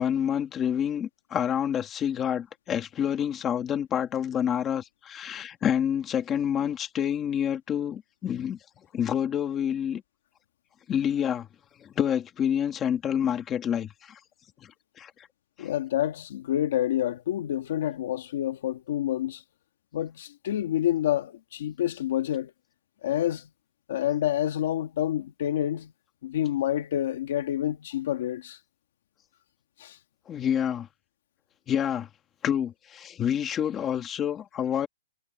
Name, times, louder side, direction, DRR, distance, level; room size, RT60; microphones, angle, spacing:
voice 1, 0.0-8.6 8.9-10.0 10.9-11.5 11.8-14.2 14.6-15.1 15.6-15.7 30.3-30.9 31.7-32.1 32.4-34.9, left 9 dB, 10° left, 1.8 m, -28 dB
voice 2, 15.6-19.4 19.9-22.5 23.0-23.5 23.9-25.9 26.2-28.6 29.8-30.0, left 12 dB, 35° left, 1.5 m, -28 dB
hypercardioid pair, 180°, 0 cm